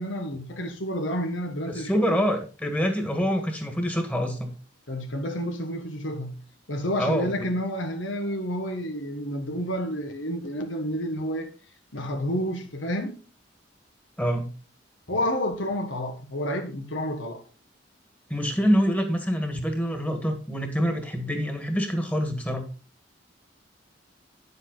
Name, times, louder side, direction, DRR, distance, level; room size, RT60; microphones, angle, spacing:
voice 1, 0.0-2.2 4.9-6.4 6.7-11.5 11.9-13.2 15.1-17.4, equal, 80° left, 1.7 m, -30 dB
voice 2, 1.7-4.5 7.0-7.3 14.2-14.5 18.3-22.6, equal, 10° left, 1.7 m, -26 dB
9.7 x 7.7 x 4.0 m
head